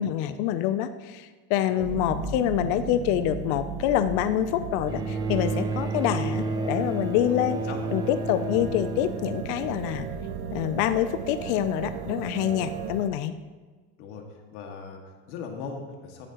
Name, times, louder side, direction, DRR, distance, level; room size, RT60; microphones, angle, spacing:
voice 1, 0.0-7.6 7.9-10.1 10.5-13.3, left 11 dB, 60° left, 11 dB, 0.6 m, -26 dB
sound 1, 1.8-13.1, right 7 dB, 75° right, 0.9 m, -35 dB
Bowed string instrument, 4.9-10.3 11.4-11.5, right 3 dB, 10° right, 0.5 m, -32 dB
voice 2, 7.1-7.8 14.0-14.2 14.5-16.3, left 5 dB, 90° left, 2 dB, 2.0 m, -39 dB
15.5 x 9.3 x 3.0 m, 1.4 s
cardioid pair, 180°, 34 cm